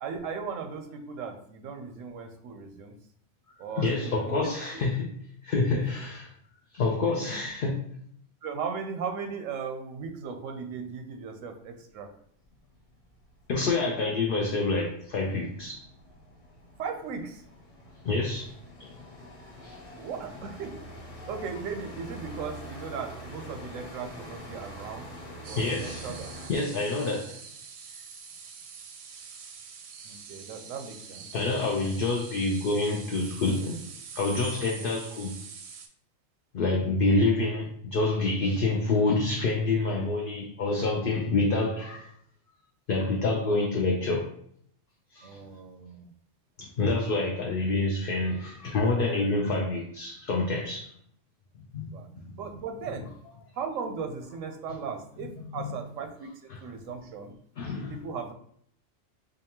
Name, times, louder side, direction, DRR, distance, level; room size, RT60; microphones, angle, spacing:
voice 1, 0.0-3.0 3.6-4.5 7.1-7.4 8.4-12.1 16.8-17.4 20.0-20.8 21.3-25.1 25.5-26.3 26.9-27.1 30.0-31.9 45.2-46.1 46.9-47.1 51.9-52.1 52.3-53.1 53.5-57.4 57.9-58.3, right 5 dB, 90° right, 5 dB, 1.0 m, -37 dB
voice 2, 3.8-5.1 5.4-6.3 6.7-7.8 13.5-15.8 18.0-18.5 18.8-18.9 19.6-19.8 25.6-26.1 26.5-27.4 31.3-33.9 34.2-35.3 36.5-42.1 42.9-44.3 45.1-45.3 46.6-50.9 51.7-51.9 52.2-52.4 55.6-55.7 56.5-56.6 57.6-57.9, left 3 dB, 60° left, 0 dB, 0.6 m, -27 dB
sound 1, 12.2-12.3 12.6-26.5, right 1 dB, 30° left, 1.3 m, -45 dB
sound 2, 25.4-35.9, right 6 dB, 65° right, 0.7 m, -45 dB
5.1 x 2.3 x 2.8 m, 0.65 s
omnidirectional pair, 1.3 m